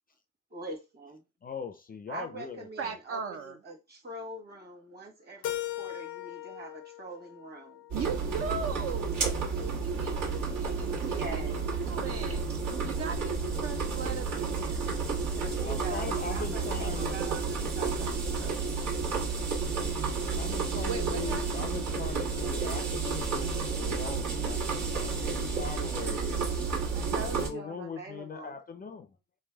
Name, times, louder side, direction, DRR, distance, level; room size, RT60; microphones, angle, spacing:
voice 1, 0.5-1.2 2.1-7.8 11.0-11.7 15.4-19.4 26.9-28.5, right 2 dB, 35° right, 1.4 m, -43 dB
voice 2, 1.4-2.7 15.7-17.2 20.4-26.6 27.3-29.1, left 6 dB, 30° left, 0.4 m, -40 dB
voice 3, 2.8-3.6 7.9-14.8 20.8-21.6, right 6 dB, 50° right, 0.5 m, -38 dB
Keyboard (musical), 5.4-8.3, left 14 dB, 80° left, 0.6 m, -39 dB
sound 1, 7.9-27.5, right 4 dB, 75° right, 1.5 m, -31 dB
3.2 x 2.1 x 3.4 m
cardioid pair, 90°, 30 cm